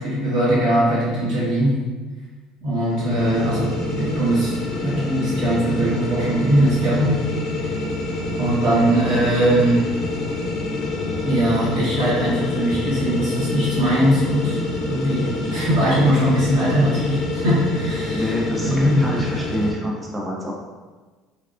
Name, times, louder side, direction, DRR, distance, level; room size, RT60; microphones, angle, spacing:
voice 1, 0.0-1.7 2.6-7.1 8.4-9.8 11.2-18.3 18.6-19.0, right 1 dB, 60° right, -8 dB, 1.2 m, -20 dB
sound 1, 2.8-19.7, left 2 dB, 40° left, 0.5 m, -27 dB
voice 2, 18.1-20.5, equal, 10° right, -3 dB, 0.4 m, -27 dB
3.4 x 2.2 x 2.4 m, 1.3 s
cardioid pair, 165°, 0 cm